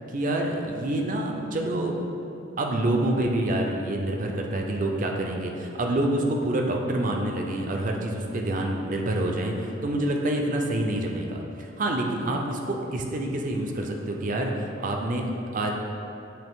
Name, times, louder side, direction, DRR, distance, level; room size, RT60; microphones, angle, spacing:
voice 1, 0.1-2.1 2.6-15.7, right 1 dB, 40° right, 2 dB, 0.5 m, -27 dB
8.5 x 3.0 x 3.6 m, 2.8 s
head